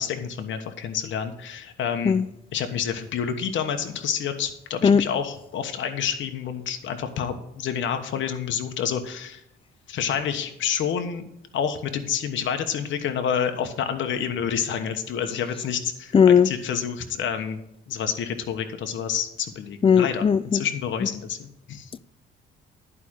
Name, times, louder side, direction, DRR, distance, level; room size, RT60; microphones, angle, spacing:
voice 1, 0.0-2.2 2.5-9.4 9.9-11.3 11.5-17.6 17.9-21.9, left 8 dB, 70° left, 1.2 m, -28 dB
voice 2, 16.1-16.5 19.8-20.6, left 7 dB, 25° left, 0.5 m, -17 dB
11.0 x 5.0 x 6.4 m
cardioid pair, 90°, 20 cm